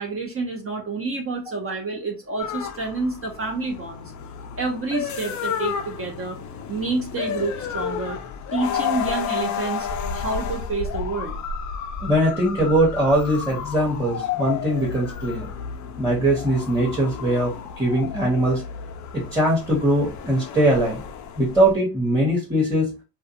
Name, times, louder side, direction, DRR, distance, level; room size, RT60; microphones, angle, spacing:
voice 1, 0.0-4.1 4.6-6.4 6.7-8.2 8.5-9.9 10.1-11.4, right 3 dB, 30° right, 2 dB, 0.6 m, -28 dB
sound 1, 2.4-21.7, left 7 dB, 40° left, 0.5 m, -32 dB
voice 2, 12.0-15.5 16.0-18.6 19.1-21.0 21.4-22.9, right 1 dB, 5° right, -4 dB, 0.9 m, -21 dB
2.3 x 2.3 x 2.7 m, 0.28 s
supercardioid pair, 75°, 47 cm